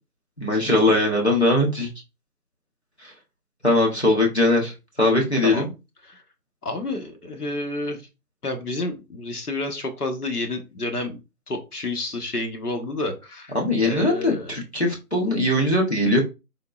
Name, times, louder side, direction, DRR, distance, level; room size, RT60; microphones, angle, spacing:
voice 1, 0.4-1.9 3.0-3.1 3.6-4.7 5.0-5.7 13.5-16.2, left 1 dB, 45° left, -1 dB, 0.8 m, -20 dB
voice 2, 6.6-8.1 8.4-11.2 11.5-13.6 13.8-14.5, left 2 dB, 70° left, 4 dB, 1.0 m, -30 dB
3.6 x 2.8 x 2.4 m, 0.26 s
figure-of-eight pair, 180°, 48 cm